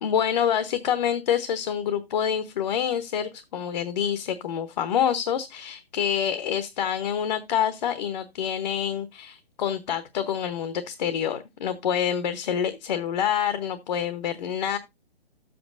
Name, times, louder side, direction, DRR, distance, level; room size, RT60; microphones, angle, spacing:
voice 1, 0.0-14.8, left 9 dB, 45° left, 1.0 m, -27 dB
12.0 x 7.9 x 2.5 m
figure-of-eight pair, 140°, 30 cm